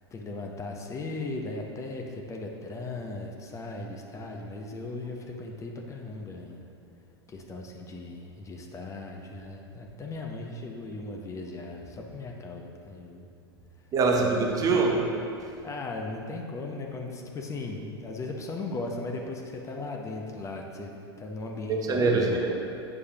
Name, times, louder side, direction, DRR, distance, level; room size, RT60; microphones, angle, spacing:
voice 1, 0.0-6.6 7.3-13.3 14.2-14.7 15.6-22.4, left 2 dB, 20° left, 1 dB, 0.7 m, -37 dB
voice 2, 13.9-15.5 21.7-22.9, right 3 dB, 25° right, 2 dB, 0.7 m, -25 dB
8.7 x 6.5 x 2.8 m, 2.5 s
figure-of-eight pair, 90°, 14 cm